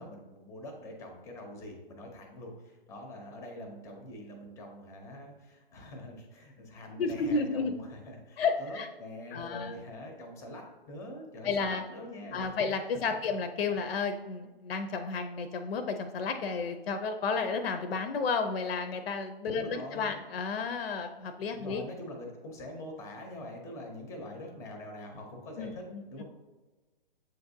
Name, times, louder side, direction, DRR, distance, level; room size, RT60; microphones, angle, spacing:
voice 1, 0.0-12.8 19.5-20.3 21.5-26.2, left 1 dB, 10° left, 3 dB, 0.5 m, -44 dB
voice 2, 7.0-7.7 8.4-8.9 9.3-9.7 11.4-11.8 12.3-21.8 25.6-26.2, left 4 dB, 75° left, 7 dB, 0.5 m, -32 dB
7.5 x 2.6 x 2.6 m, 1.2 s
hypercardioid pair, 130°, 30 cm